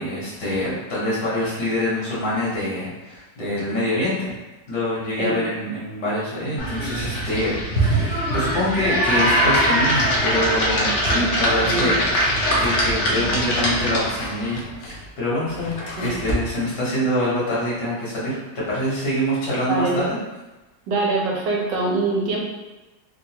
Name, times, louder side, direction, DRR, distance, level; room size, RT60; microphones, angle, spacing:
voice 1, 0.0-4.4 4.7-11.9 12.6-20.2, left 1 dB, 70° left, -7 dB, 1.6 m, -25 dB
sound 1, 6.6-14.3, equal, 55° left, 0.9 m, -21 dB
Drawer open or close, 9.9-10.9 11.9-13.0 13.9-16.5, equal, 90° left, 0.6 m, -33 dB
voice 2, 11.6-11.9 16.0-16.1 19.7-20.0 20.9-22.4, right 2 dB, 85° right, -2 dB, 1.4 m, -23 dB
3.7 x 2.3 x 2.8 m, 1.1 s
omnidirectional pair, 1.9 m